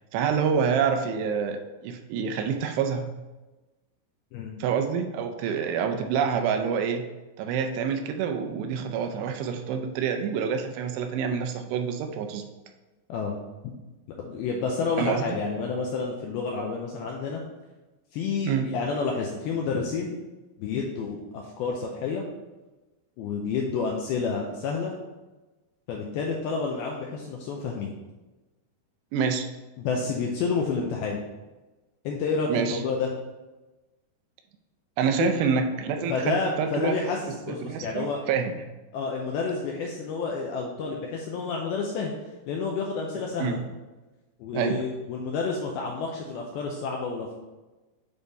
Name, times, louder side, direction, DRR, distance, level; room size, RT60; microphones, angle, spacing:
voice 1, 0.1-3.1 4.6-7.0 7.4-12.4 15.0-15.4 18.5-18.7 29.1-29.5 32.5-32.8 35.0-37.1 37.5-38.6 43.4-43.6 44.5-44.8, right 6 dB, 80° right, 6 dB, 2.6 m, -27 dB
voice 2, 14.2-17.4 18.1-20.2 20.6-22.2 23.2-25.0 25.9-27.9 29.8-31.2 32.0-33.1 35.2-35.4 36.1-38.2 38.9-42.1 42.5-43.6 44.4-47.4, left 4 dB, 85° left, 0 dB, 2.2 m, -29 dB
9.0 x 3.5 x 4.0 m, 1.1 s
omnidirectional pair, 5.0 m